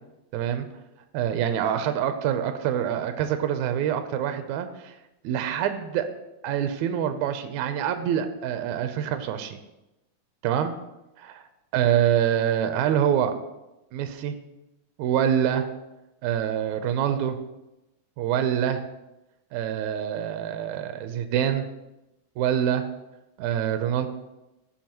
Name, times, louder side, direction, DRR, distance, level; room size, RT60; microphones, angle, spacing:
voice 1, 0.3-0.7 1.1-4.9 5.2-6.0 6.4-9.6 10.4-10.7 11.2-11.4 11.7-13.3 13.9-14.4 15.0-15.6 16.2-17.4 18.2-18.8 19.5-21.7 22.4-22.8 23.4-24.1, right 9 dB, 80° right, 8 dB, 2.0 m, -25 dB
15.0 x 5.8 x 2.9 m, 0.96 s
omnidirectional pair, 3.6 m